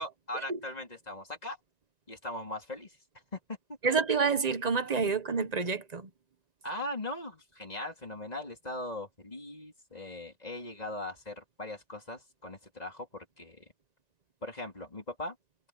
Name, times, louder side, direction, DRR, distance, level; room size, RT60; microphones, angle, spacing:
voice 1, 0.0-1.6 2.1-3.0 3.3-3.4 4.7-4.8 6.6-13.7 14.4-15.4, left 1 dB, 35° left, 3.7 m, -40 dB
voice 2, 3.8-6.1, right 5 dB, 40° right, 1.1 m, -28 dB
omnidirectional pair, 1.2 m